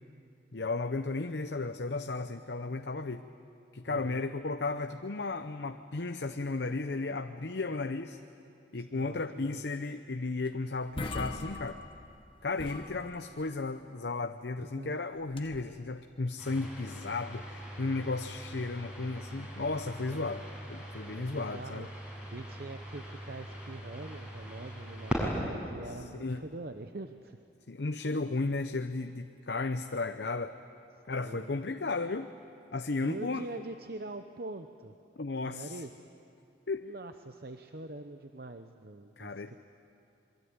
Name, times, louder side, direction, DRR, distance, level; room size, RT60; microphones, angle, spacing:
voice 1, 0.5-3.2 3.7-8.2 8.7-11.8 12.4-21.9 26.1-26.4 27.7-30.6 31.1-32.3 32.7-33.4 35.2-35.8 36.7-36.9 39.2-39.6, left 3 dB, 65° left, 7 dB, 0.8 m, -34 dB
voice 2, 3.9-4.2 8.7-9.7 14.6-15.0 20.1-20.4 21.0-21.9 22.3-27.4 31.2-31.6 33.0-35.0 35.4-36.1 36.8-39.6, right 2 dB, 55° right, 7 dB, 0.8 m, -44 dB
sound 1, 10.5-10.6 10.8-12.2 12.6-13.5 15.2-15.8, left 2 dB, 30° left, 1.5 m, -41 dB
sound 2, 16.4-25.4, equal, 5° right, 6.6 m, -40 dB
26.5 x 23.5 x 9.6 m, 2.6 s
head